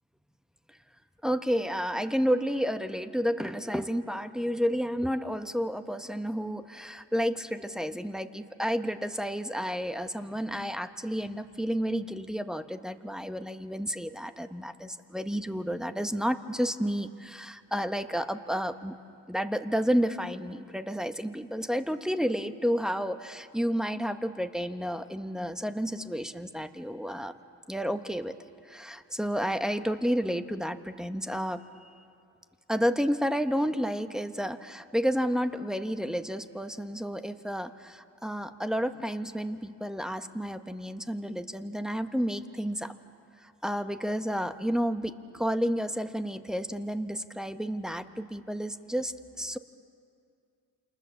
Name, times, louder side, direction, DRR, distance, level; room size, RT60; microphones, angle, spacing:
voice 1, 1.2-18.9 19.3-27.3 27.7-28.3 28.6-31.9 32.7-42.9 43.4-49.6, equal, ahead, 8 dB, 1.1 m, -31 dB
29.0 x 27.0 x 7.2 m, 2.4 s
cardioid pair, 90°, 30 cm